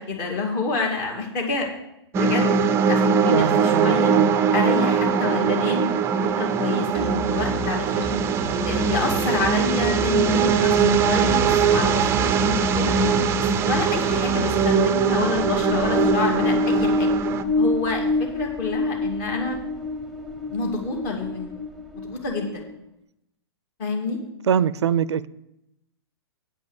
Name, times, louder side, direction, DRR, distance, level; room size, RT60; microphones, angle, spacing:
voice 1, 0.0-1.7 2.1-2.5 2.9-4.1 4.5-5.9 6.2-8.1 8.6-12.9 13.6-17.1 17.6-19.6 20.5-21.5 22.0-22.6 23.8-24.2, left 3 dB, 40° left, 2.5 m, -28 dB
sound 1, 2.1-17.4, right 6 dB, 20° right, 0.5 m, -21 dB
voice 2, 3.3-4.4 24.5-25.3, right 8 dB, 80° right, 0.4 m, -23 dB
Musical instrument, 6.9-14.8, left 4 dB, 75° left, 4.6 m, -33 dB
sound 2, 15.2-22.7, left 2 dB, ahead, 0.9 m, -26 dB
8.9 x 5.3 x 7.9 m
hypercardioid pair, 130°, 14 cm